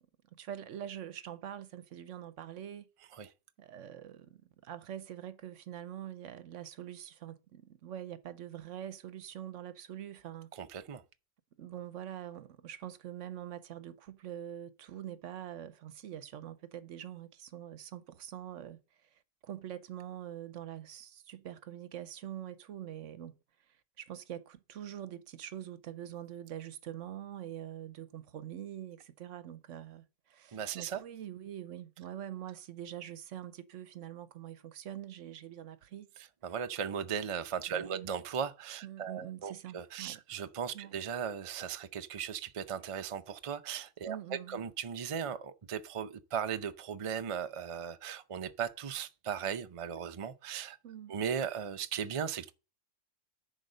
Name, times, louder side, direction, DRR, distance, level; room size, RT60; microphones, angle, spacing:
voice 1, 0.4-2.9 3.6-10.5 11.6-23.4 23.7-36.1 37.7-38.1 38.8-40.2 40.7-41.0 44.1-44.6 50.8-51.2, right 11 dB, 75° right, 1.0 m, -44 dB
voice 2, 10.6-11.0 30.5-31.0 36.4-44.2 44.5-50.8 51.1-52.5, right 7 dB, 40° right, 0.5 m, -37 dB
10.5 x 4.1 x 6.6 m
omnidirectional pair, 1.3 m